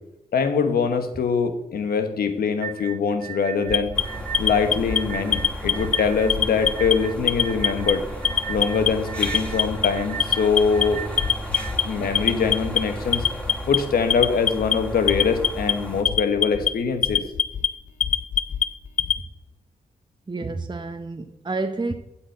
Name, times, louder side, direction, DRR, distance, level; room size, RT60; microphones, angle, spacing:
voice 1, 0.3-3.9 4.4-8.0 8.5-11.0 11.8-13.2 13.7-17.2, left 5 dB, 75° left, 1.2 m, -23 dB
sound 1, 2.6-11.7, right 8 dB, 70° right, 1.0 m, -37 dB
Alarm, 3.7-5.0 5.3-6.0 6.3-6.9 7.3-7.9 8.2-8.9 9.2-9.9 10.2-10.8 11.2-11.8 12.2-12.8 13.1-13.8 14.1-14.7 15.1-15.7 16.1-16.7 17.0-17.7 18.0-19.2, left 8 dB, 55° left, 0.5 m, -22 dB
sound 2, 3.9-16.0, right 1 dB, 5° left, 2.4 m, -34 dB
voice 2, 20.3-21.9, right 3 dB, 30° right, 0.9 m, -29 dB
8.1 x 5.9 x 7.8 m
supercardioid pair, 45°, 16 cm